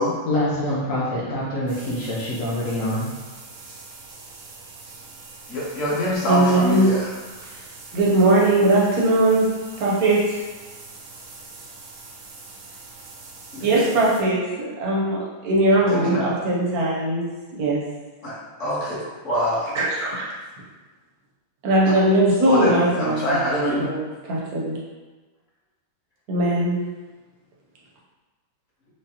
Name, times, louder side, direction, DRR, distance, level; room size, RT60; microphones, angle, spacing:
voice 1, 0.3-3.1, left 1 dB, 70° left, -6 dB, 0.7 m, -25 dB
sound 1, 1.7-14.2, right 3 dB, 90° right, 1.5 m, -43 dB
voice 2, 5.5-7.1 13.5-13.7 15.9-16.2 18.2-18.3 18.6-19.8 21.8-21.9 22.4-23.9, left 1 dB, 50° left, -8 dB, 1.0 m, -24 dB
voice 3, 6.3-6.9 7.5-7.6 7.9-9.5 9.8-10.4 13.6-17.3 17.6-17.8 19.7-20.2 21.6-23.4 23.8-24.8 26.3-26.8, right 2 dB, 65° right, -5 dB, 0.9 m, -20 dB
4.9 x 2.2 x 2.7 m, 1.2 s
omnidirectional pair, 2.2 m